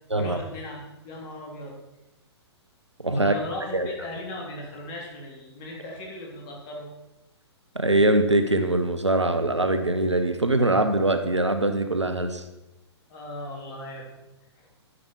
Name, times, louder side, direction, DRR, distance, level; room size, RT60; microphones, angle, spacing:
voice 1, 0.1-1.8 3.1-6.9 13.1-14.1 14.6-14.7, left 1 dB, 30° left, -1 dB, 3.7 m, -37 dB
voice 2, 3.0-3.3 3.7-3.9 7.7-12.4, right 2 dB, 90° right, 8 dB, 1.1 m, -22 dB
10.5 x 10.5 x 4.7 m, 0.98 s
figure-of-eight pair, 120°, 14 cm